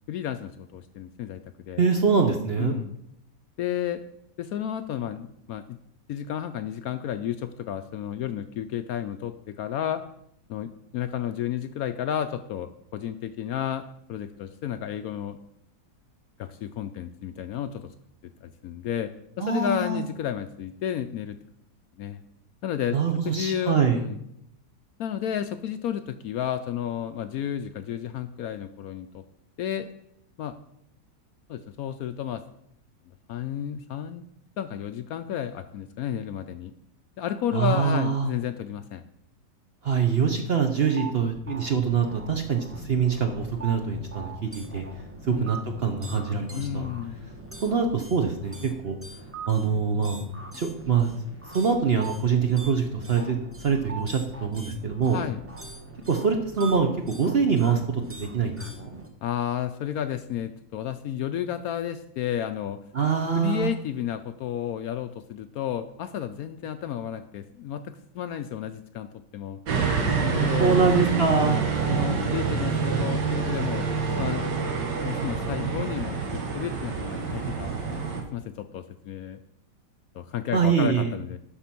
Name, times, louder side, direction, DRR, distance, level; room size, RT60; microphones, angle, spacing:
voice 1, 0.1-1.4 1.6-1.8 2.6-2.9 3.6-4.0 4.4-5.8 6.1-10.0 10.5-15.4 16.4-17.9 18.4-19.1 19.4-21.4 22.0-22.2 22.6-24.2 25.0-29.2 29.6-29.9 30.4-30.6 31.5-32.4 33.3-34.3 34.6-36.7 37.2-39.0 45.3-45.5 46.5-47.3 55.1-55.4 59.2-62.8 63.3-69.6 70.2-70.8 71.4-73.9 74.2-74.5 75.0-78.0 78.3-79.4 80.1-81.4, left 10 dB, 70° left, 10 dB, 0.9 m, -32 dB
voice 2, 1.8-2.8 19.4-20.1 22.9-24.0 37.5-38.3 39.8-44.8 45.3-46.9 47.6-48.9 49.5-50.2 50.5-51.1 51.5-53.4 53.6-55.2 56.1-59.0 62.9-63.7 70.6-71.6 80.5-81.1, right 6 dB, 50° right, 4 dB, 0.8 m, -24 dB
sound 1, 40.9-59.1, right 3 dB, 10° right, 0.6 m, -42 dB
sound 2, 69.7-78.2, right 5 dB, 80° right, 1.9 m, -27 dB
11.5 x 4.4 x 5.9 m, 0.75 s
omnidirectional pair, 1.8 m